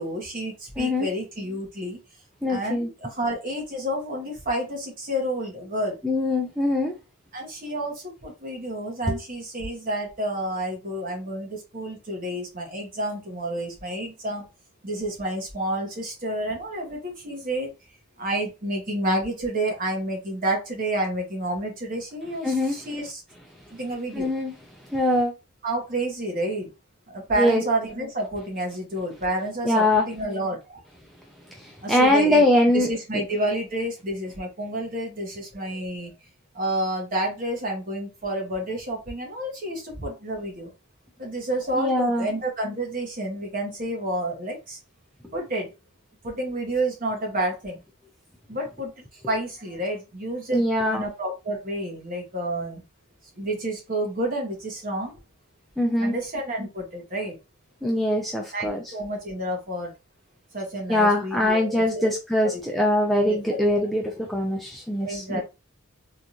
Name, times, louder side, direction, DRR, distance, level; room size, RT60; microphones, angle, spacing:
voice 1, 0.0-2.0 2.5-6.0 7.3-14.4 14.8-17.7 18.2-23.2 23.7-24.3 25.6-26.7 27.1-30.8 31.8-32.4 32.7-36.1 36.5-40.7 41.2-44.8 45.3-45.7 46.2-47.8 48.5-52.8 53.3-55.2 56.0-57.4 58.5-59.9 60.5-62.1 62.4-62.6 63.2-63.6 65.0-65.4, right 1 dB, 40° right, 1.2 m, -29 dB
voice 2, 0.8-1.1 2.4-2.9 6.0-6.9 9.1-9.2 22.4-22.8 24.1-24.5 24.9-25.3 27.4-27.6 29.6-30.1 31.6-32.9 41.7-42.3 50.5-51.1 55.8-56.1 57.8-58.8 60.9-65.4, left 1 dB, ahead, 0.4 m, -22 dB
3.7 x 2.5 x 2.9 m
head